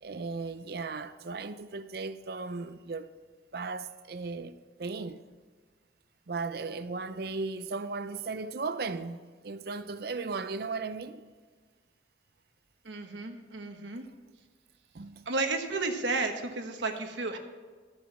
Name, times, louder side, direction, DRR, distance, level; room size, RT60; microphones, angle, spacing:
voice 1, 0.0-3.1 3.5-5.2 6.3-11.2 14.9-15.3, right 4 dB, 60° right, 0.6 m, -36 dB
voice 2, 12.8-14.0 15.3-17.4, right 3 dB, 85° right, 1.2 m, -32 dB
13.0 x 6.1 x 7.3 m
head